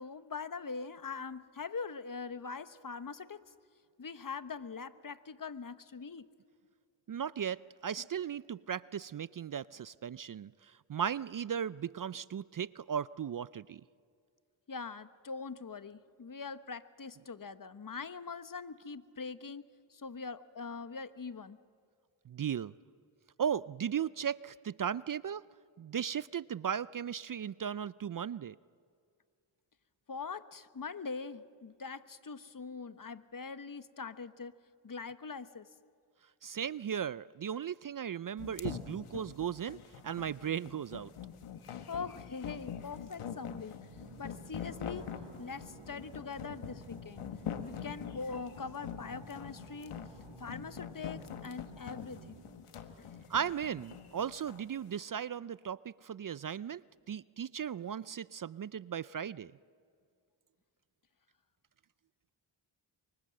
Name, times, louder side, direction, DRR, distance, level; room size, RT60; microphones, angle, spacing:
voice 1, 0.0-3.4 4.0-6.3 14.7-19.6 19.9-21.6 30.1-34.5 34.8-35.7 41.9-43.7 44.2-47.3 47.6-50.0 50.4-52.4 53.0-53.2, left 5 dB, 40° left, 13 dB, 1.2 m, -42 dB
voice 2, 7.1-13.8 22.3-22.7 23.4-25.4 25.8-28.6 36.4-39.8 40.0-41.1 53.3-59.5, right 8 dB, 45° right, 19 dB, 0.5 m, -36 dB
sound 1, 38.4-54.6, left 8 dB, 85° left, 1.6 m, -44 dB
sound 2, 43.9-52.4, right 4 dB, 70° right, 3.7 m, -54 dB
24.5 x 24.0 x 7.7 m, 2.3 s
supercardioid pair, 40°, 49 cm